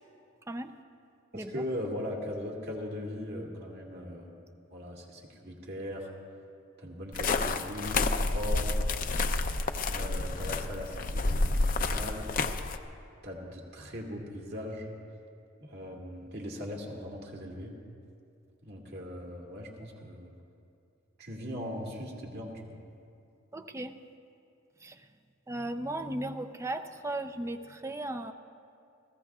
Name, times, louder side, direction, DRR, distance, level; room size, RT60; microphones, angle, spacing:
voice 1, 0.5-0.8 1.3-1.6 23.5-23.9 24.8-25.1 25.5-28.3, right 1 dB, 15° right, 7 dB, 0.5 m, -36 dB
voice 2, 1.3-4.3 4.7-6.1 6.8-8.7 9.9-12.3 13.2-14.9 15.6-17.8 18.6-20.3 21.2-22.8, left 1 dB, 50° right, -2 dB, 2.1 m, -39 dB
sound 1, 7.1-12.8, left 3 dB, 45° left, 0.6 m, -29 dB
29.5 x 15.5 x 2.4 m, 2.5 s
head